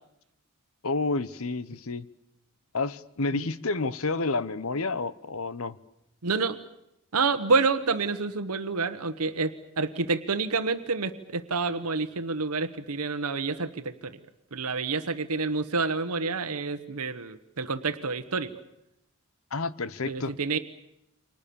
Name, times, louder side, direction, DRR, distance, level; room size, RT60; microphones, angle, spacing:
voice 1, 0.8-2.1 2.7-5.8 19.5-20.4, left 3 dB, 70° left, 17 dB, 1.0 m, -30 dB
voice 2, 6.2-6.6 7.1-14.2 14.5-18.5 20.1-20.6, right 4 dB, 90° right, 9 dB, 1.2 m, -28 dB
29.5 x 25.0 x 7.0 m, 0.84 s
head